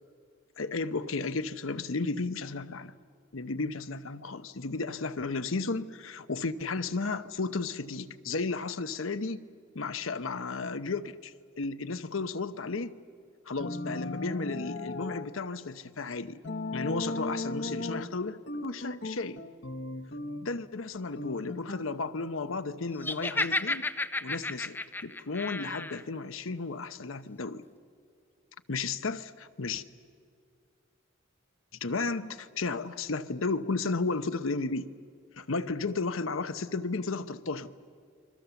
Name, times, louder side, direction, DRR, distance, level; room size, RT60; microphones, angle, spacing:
voice 1, 0.6-2.9 3.3-9.4 9.7-12.9 13.5-16.4 16.7-19.4 20.4-23.8 24.2-24.8 25.0-27.6 28.7-29.8 31.8-34.9 35.4-37.7, left 3 dB, 80° left, 0.9 m, -33 dB
sound 1, 13.6-15.3 16.4-18.1 18.5-20.5 21.2-21.9, left 2 dB, 55° left, 1.1 m, -36 dB
Laughter, 23.0-26.0, left 2 dB, 10° left, 0.5 m, -32 dB
29.0 x 22.5 x 7.0 m
head